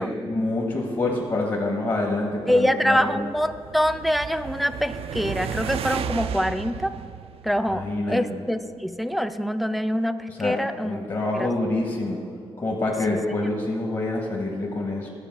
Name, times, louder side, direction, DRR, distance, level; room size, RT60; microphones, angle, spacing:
voice 1, 0.0-3.2 7.7-8.4 10.3-10.6 10.8-12.2 12.6-15.1, left 2 dB, 45° left, -1 dB, 1.4 m, -26 dB
voice 2, 2.5-6.9 7.4-11.0 11.3-11.5 13.1-13.2, equal, ahead, 11 dB, 0.4 m, -25 dB
sound 1, 2.9-8.2, right 8 dB, 70° right, 0.4 m, -34 dB
12.0 x 4.5 x 7.5 m, 2.2 s
cardioid pair, 80°, 10 cm